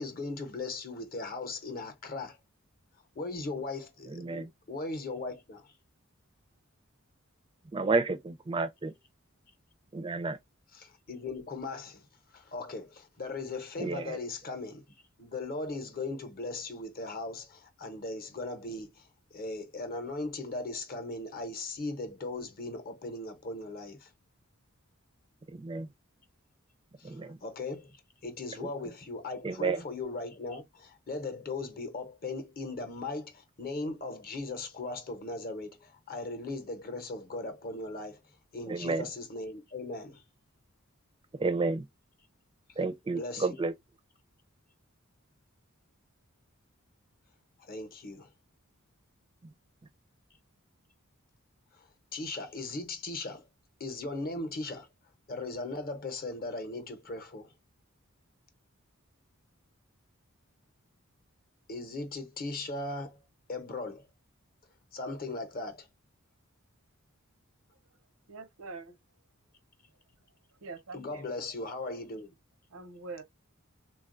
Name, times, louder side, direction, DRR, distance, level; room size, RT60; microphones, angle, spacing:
voice 1, 0.0-2.4 3.1-5.7 10.7-12.1 12.3-14.8 15.2-24.1 27.0-28.0 28.2-38.2 38.5-40.2 43.1-43.6 47.7-48.3 51.8-53.4 53.8-54.9 55.3-57.5 61.7-63.2 63.5-64.0 64.9-65.9 70.9-72.3, left 2 dB, 45° left, 0.8 m, -38 dB
voice 2, 4.1-4.5 7.7-8.9 9.9-10.4 13.8-14.2 25.5-25.9 27.0-27.4 28.6-28.7 29.4-29.8 38.7-39.0 41.4-41.8 42.8-43.7, right 3 dB, 25° right, 0.4 m, -31 dB
voice 3, 68.3-69.0 70.6-71.2 72.7-73.2, right 3 dB, 90° right, 0.7 m, -44 dB
3.5 x 2.3 x 2.5 m
head